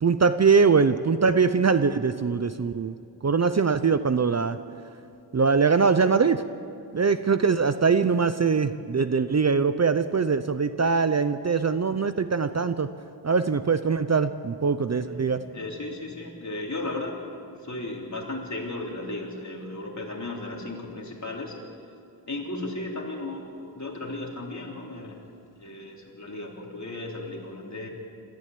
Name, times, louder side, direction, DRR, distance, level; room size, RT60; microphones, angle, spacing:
voice 1, 0.0-2.9 3.2-4.6 5.3-6.4 6.9-12.9 13.2-15.4, right 5 dB, 35° right, 11 dB, 0.6 m, -22 dB
voice 2, 15.2-21.5 22.3-25.2 25.6-27.9, left 2 dB, 40° left, -1 dB, 3.4 m, -35 dB
28.0 x 13.5 x 8.4 m, 2.5 s
wide cardioid pair, 120°, 44 cm